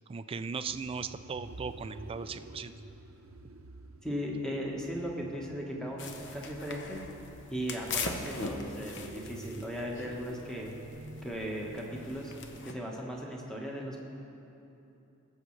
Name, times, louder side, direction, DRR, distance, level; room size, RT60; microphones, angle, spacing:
voice 1, 0.1-2.7, right 5 dB, 25° right, 11 dB, 0.3 m, -38 dB
sound 1, 0.6-12.8, right 2 dB, 90° right, 0.7 m, -49 dB
voice 2, 4.0-7.0 7.5-10.7 11.2-12.3 12.6-14.0, equal, 5° left, -2 dB, 1.3 m, -37 dB
sound 2, 6.0-12.7, left 4 dB, 60° left, 0.8 m, -41 dB
20.5 x 7.3 x 3.2 m, 2.9 s
head